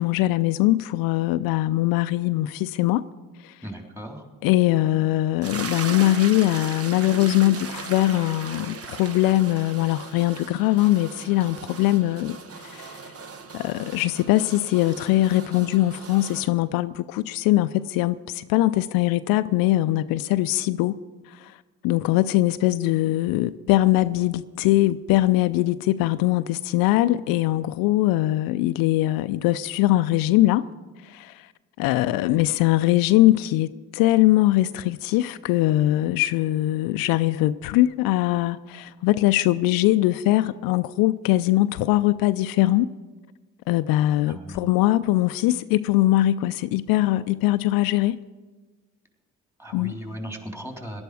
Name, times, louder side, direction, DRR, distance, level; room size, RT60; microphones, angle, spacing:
voice 1, 0.0-3.0 3.4-3.6 4.4-13.1 13.5-21.0 21.3-21.6 21.8-30.7 31.0-31.5 31.8-42.9 43.7-48.2 49.7-50.0, left 16 dB, 75° left, 0.5 m, -21 dB
voice 2, 3.6-4.2 44.3-44.7 49.6-51.0, equal, 5° right, 3.4 m, -37 dB
sound 1, 5.4-16.5, right 5 dB, 40° right, 1.2 m, -38 dB
17.5 x 11.5 x 4.8 m
hypercardioid pair, 55°, 36 cm